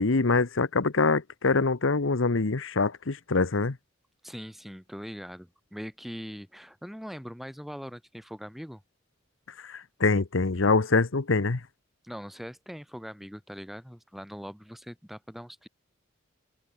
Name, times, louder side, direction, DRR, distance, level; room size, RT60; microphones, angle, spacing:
voice 1, 0.0-3.8 9.6-11.6, left 3 dB, 80° left, 1.0 m, -24 dB
voice 2, 4.2-8.8 12.0-15.7, equal, ahead, 4.0 m, -41 dB
head